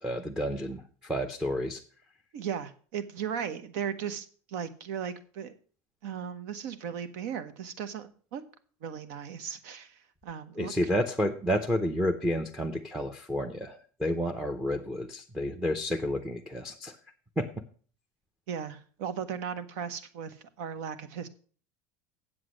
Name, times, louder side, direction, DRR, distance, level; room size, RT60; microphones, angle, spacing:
voice 1, 0.0-1.8 10.6-17.0 17.4-17.5, equal, 5° right, 5 dB, 0.6 m, -30 dB
voice 2, 2.3-5.5 6.0-8.4 8.8-10.7 18.5-21.3, right 7 dB, 70° right, 12 dB, 1.1 m, -37 dB
8.0 x 7.7 x 6.3 m, 0.43 s
cardioid pair, 160°, 9 cm